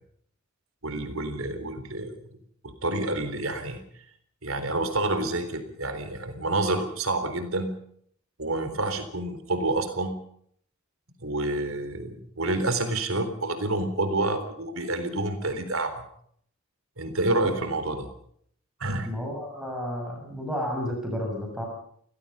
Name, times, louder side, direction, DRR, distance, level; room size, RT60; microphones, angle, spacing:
voice 1, 0.8-2.1 2.8-3.8 4.4-7.7 8.4-10.2 11.2-16.0 17.0-18.1 18.8-19.1, right 2 dB, 70° right, 9 dB, 3.9 m, -28 dB
voice 2, 19.1-21.7, equal, 5° right, 1 dB, 7.1 m, -32 dB
30.0 x 16.5 x 5.6 m, 0.64 s
head